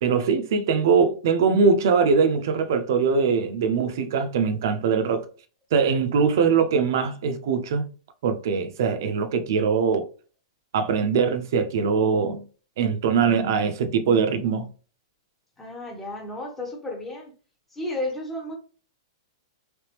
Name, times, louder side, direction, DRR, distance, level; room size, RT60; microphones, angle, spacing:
voice 1, 0.0-5.3 5.7-7.8 8.2-10.1 10.7-12.4 12.8-14.7, right 5 dB, 45° right, 0.6 m, -22 dB
voice 2, 15.6-17.3 17.7-18.6, left 1 dB, 5° left, 0.7 m, -32 dB
3.4 x 3.2 x 2.9 m
supercardioid pair, 180°, 3 cm